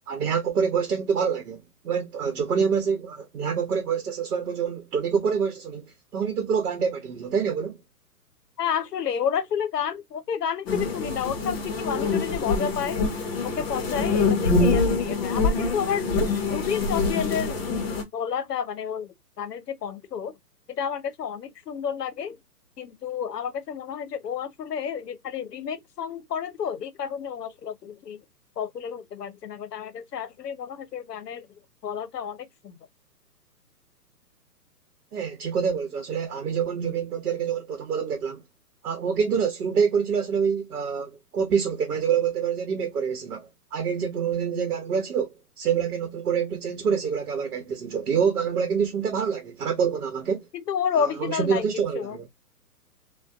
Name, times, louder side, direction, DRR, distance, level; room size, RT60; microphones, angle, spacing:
voice 1, 0.1-7.8 35.1-38.4 38.8-50.5 51.0-52.2, right 6 dB, 70° right, 0.9 m, -26 dB
voice 2, 8.6-13.0 13.4-16.1 16.5-17.7 18.1-20.4 20.7-22.4 22.8-28.2 28.6-32.8 50.5-52.2, left 8 dB, 80° left, 0.7 m, -31 dB
sound 1, 10.7-18.0, left 3 dB, 40° left, 0.8 m, -25 dB
2.5 x 2.2 x 2.3 m
hypercardioid pair, 135°, 48 cm